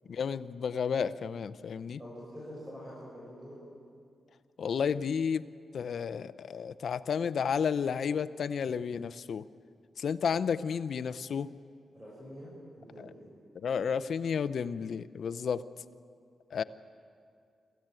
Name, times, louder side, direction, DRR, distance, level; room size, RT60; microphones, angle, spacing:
voice 1, 0.1-2.0 4.6-5.5 5.7-9.5 10.0-11.5 13.6-15.6 16.5-16.6, left 6 dB, 60° left, 14 dB, 0.6 m, -32 dB
voice 2, 2.0-3.5 11.9-13.3, equal, 15° right, -7 dB, 6.6 m, -46 dB
26.0 x 15.0 x 9.0 m, 2.3 s
wide cardioid pair, 140°, 0 cm